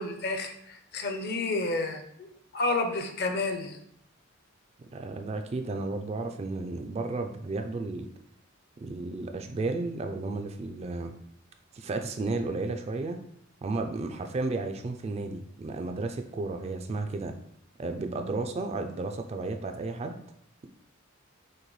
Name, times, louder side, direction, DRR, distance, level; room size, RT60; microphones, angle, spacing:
voice 1, 0.0-2.3 2.5-3.8, left 2 dB, 50° left, 5 dB, 0.6 m, -30 dB
voice 2, 4.9-8.1 8.8-11.1 11.7-13.2 13.6-17.3 17.8-20.2, right 3 dB, 30° right, 6 dB, 0.3 m, -33 dB
6.4 x 2.2 x 3.1 m, 0.69 s
head